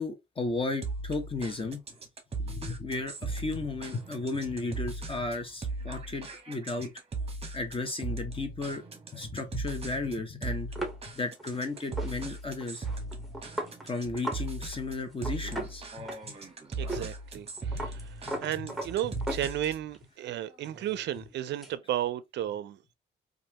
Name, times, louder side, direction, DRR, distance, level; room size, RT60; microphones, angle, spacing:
voice 1, 0.0-1.8 2.4-6.9 7.5-8.8 9.1-10.7 11.1-12.9 13.8-15.8 16.2-16.3 16.9-17.0, left 3 dB, 25° left, 0.9 m, -34 dB
sound 1, 0.8-19.9, right 3 dB, 30° right, 0.9 m, -38 dB
sound 2, 10.8-14.5 14.7-14.8 15.1-16.5 16.9-17.1 17.3-20.0 20.3-21.8, right 1 dB, ahead, 1.0 m, -38 dB
voice 2, 16.8-22.8, right 12 dB, 65° right, 0.4 m, -34 dB
3.1 x 2.5 x 2.8 m
cardioid pair, 90°, 20 cm